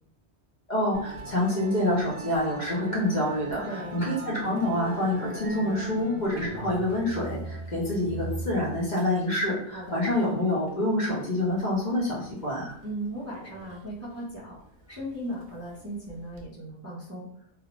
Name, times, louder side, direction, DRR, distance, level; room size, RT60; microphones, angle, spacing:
voice 1, 0.7-12.7, left 1 dB, 50° left, -5 dB, 0.7 m, -27 dB
Musical instrument, 0.9-16.4, right 2 dB, 60° right, 0.7 m, -41 dB
voice 2, 3.6-4.0 9.7-10.0 12.8-14.6 14.9-17.3, right 1 dB, 20° right, -7 dB, 0.5 m, -37 dB
2.4 x 2.0 x 2.9 m, 0.64 s
omnidirectional pair, 1.2 m